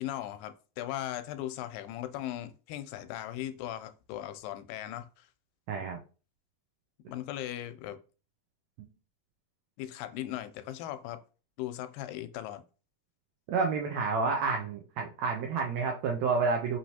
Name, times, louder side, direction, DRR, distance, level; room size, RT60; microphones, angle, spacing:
voice 1, 0.0-5.3 7.1-8.0 9.8-11.2 11.6-12.6, left 13 dB, 85° left, 2.2 m, -38 dB
voice 2, 5.7-6.0 13.5-16.8, right 4 dB, 85° right, 1.5 m, -29 dB
5.3 x 3.1 x 2.7 m
omnidirectional pair, 3.9 m